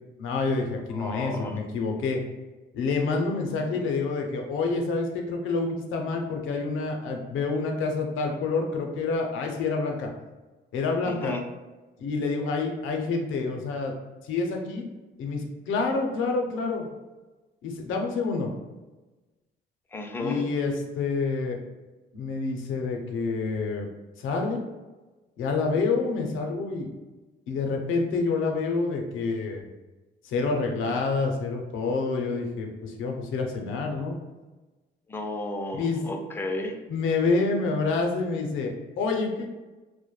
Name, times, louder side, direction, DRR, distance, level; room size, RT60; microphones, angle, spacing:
voice 1, 0.2-2.2 2.7-10.1 10.7-11.4 12.0-13.9 14.2-14.8 15.2-16.9 17.6-18.5 20.2-21.6 22.1-23.9 24.2-24.6 25.4-26.9 27.5-29.6 30.2-34.2 35.7-36.0 36.9-39.5, left 4 dB, 85° left, 2 dB, 0.5 m, -28 dB
voice 2, 0.9-1.6 3.6-3.8 11.0-11.4 19.9-20.4 35.1-36.8, left 2 dB, 10° left, 3 dB, 0.3 m, -33 dB
2.2 x 2.0 x 3.0 m, 1.2 s
cardioid pair, 90°, 20 cm